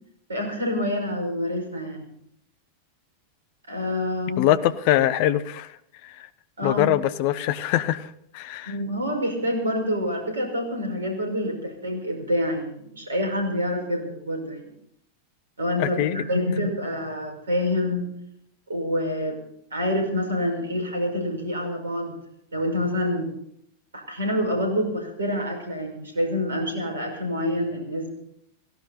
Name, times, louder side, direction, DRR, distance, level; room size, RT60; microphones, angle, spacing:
voice 1, 0.3-2.1 3.7-4.6 6.6-6.9 8.7-14.7 15.6-18.1 18.7-19.4 19.7-22.1 22.5-23.3 23.9-28.2, left 1 dB, 75° right, 3 dB, 5.5 m, -27 dB
voice 2, 4.4-5.7 6.0-6.3 6.6-8.1 8.3-8.7 15.8-16.2, left 13 dB, 45° left, 15 dB, 1.0 m, -23 dB
17.5 x 16.5 x 4.1 m, 0.72 s
figure-of-eight pair, 90°, 0 cm